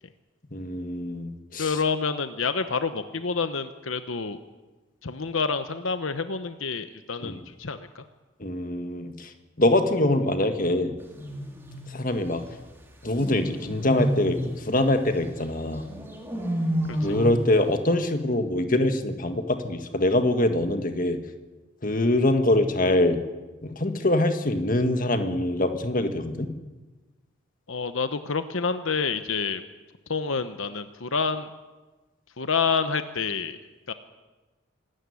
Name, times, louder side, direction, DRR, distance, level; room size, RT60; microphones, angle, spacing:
voice 1, 0.5-1.8 7.2-7.4 8.4-11.0 11.9-12.4 13.0-15.8 17.0-21.2 21.8-23.2 23.6-26.5, left 1 dB, 40° left, 7 dB, 1.8 m, -24 dB
voice 2, 1.6-4.4 5.0-8.0 16.9-17.2 27.7-29.6 30.1-31.5 32.4-33.6 33.9-34.0, left 5 dB, 80° left, 10 dB, 1.0 m, -28 dB
sound 1, 11.0-11.9 13.2-14.5 15.9-17.5, right 1 dB, 10° right, 3.0 m, -30 dB
26.0 x 13.5 x 9.8 m, 1.2 s
head